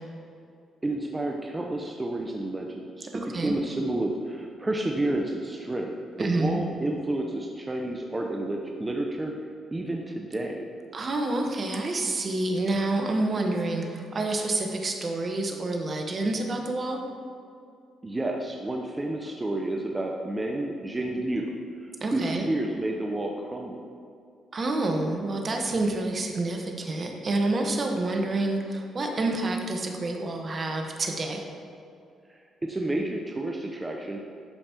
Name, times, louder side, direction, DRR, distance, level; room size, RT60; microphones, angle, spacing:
voice 1, 0.8-9.3 9.7-10.7 18.0-23.9 32.3-34.2, right 1 dB, 20° right, 1 dB, 0.7 m, -30 dB
voice 2, 3.1-3.5 6.2-6.6 10.9-17.0 22.0-22.4 24.5-31.4, right 2 dB, 45° right, 3 dB, 1.1 m, -28 dB
11.5 x 5.3 x 2.9 m, 2.4 s
supercardioid pair, 55°, 0 cm